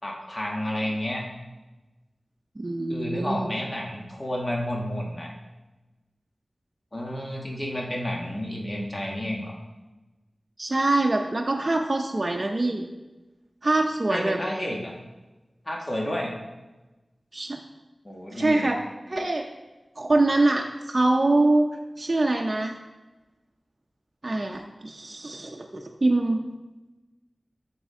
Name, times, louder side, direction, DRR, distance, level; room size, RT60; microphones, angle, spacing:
voice 1, 0.0-1.2 2.9-5.3 6.9-9.6 14.1-14.9 15.6-16.3 18.0-18.7, left 1 dB, 35° left, -1 dB, 1.4 m, -31 dB
voice 2, 2.6-3.5 10.6-12.8 13.6-14.4 17.3-17.6 18.3-18.8 19.1-19.4 20.0-21.7 22.0-22.7 24.2-26.4, right 2 dB, 45° right, 1 dB, 0.6 m, -24 dB
7.7 x 6.2 x 3.7 m, 1.1 s
wide cardioid pair, 55°, 0 cm